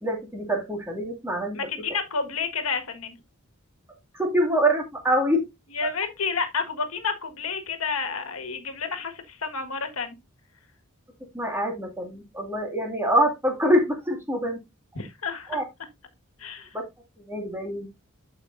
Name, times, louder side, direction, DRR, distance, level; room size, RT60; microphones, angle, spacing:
voice 1, 0.0-1.6 4.1-5.5 11.3-14.6 15.5-15.6 16.7-16.8 17.3-17.9, equal, 10° right, 2.1 m, -25 dB
voice 2, 1.5-3.2 5.7-10.1 14.9-15.6 16.4-16.7, left 5 dB, 75° left, 1.6 m, -30 dB
11.5 x 5.1 x 2.5 m
head